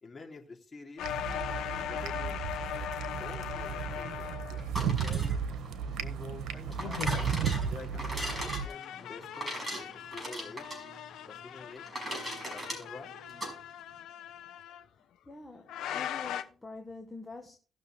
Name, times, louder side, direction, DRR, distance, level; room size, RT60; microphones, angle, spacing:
voice 1, 0.0-5.6 6.0-7.3 7.7-10.7 11.3-13.1, left 4 dB, 30° left, 3.0 m, -49 dB
sound 1, 1.0-4.9 6.8-7.4 8.3-14.8 15.7-16.4, left 11 dB, 85° left, 0.9 m, -40 dB
sound 2, 1.0-8.7, right 7 dB, 85° right, 1.3 m, -34 dB
sound 3, 4.6-13.5, right 1 dB, 15° right, 5.7 m, -39 dB
voice 2, 15.0-17.6, left 3 dB, 15° left, 1.4 m, -46 dB
17.5 x 6.5 x 3.3 m
cardioid pair, 90°, 0 cm